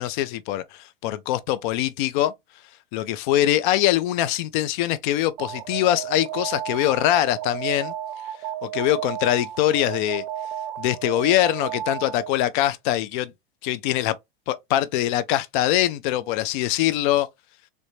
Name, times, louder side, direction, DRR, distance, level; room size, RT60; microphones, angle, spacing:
voice 1, 0.0-2.3 2.9-7.9 8.6-10.2 10.8-13.3 13.6-14.1 14.5-17.3, left 13 dB, 55° left, 0.4 m, -23 dB
Alarm, 5.4-12.5, right 11 dB, 55° right, 0.5 m, -33 dB
3.3 x 2.6 x 3.0 m
supercardioid pair, 135°, 30 cm